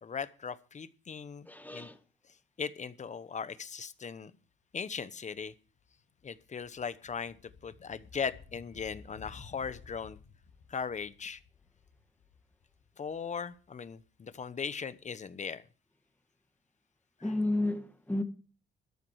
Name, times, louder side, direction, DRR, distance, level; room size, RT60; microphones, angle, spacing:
voice 1, 0.0-1.9 2.6-4.3 4.7-5.5 6.2-10.2 10.7-11.4 13.0-15.6 17.2-17.3, left 6 dB, 35° left, 1.0 m, -39 dB
voice 2, 1.5-2.0 17.2-18.2, left 2 dB, 10° left, 2.1 m, -32 dB
sound 1, 4.9-5.1 5.5-14.3, left 5 dB, 60° left, 2.9 m, -55 dB
13.5 x 10.5 x 4.8 m
cardioid pair, 90°, 20 cm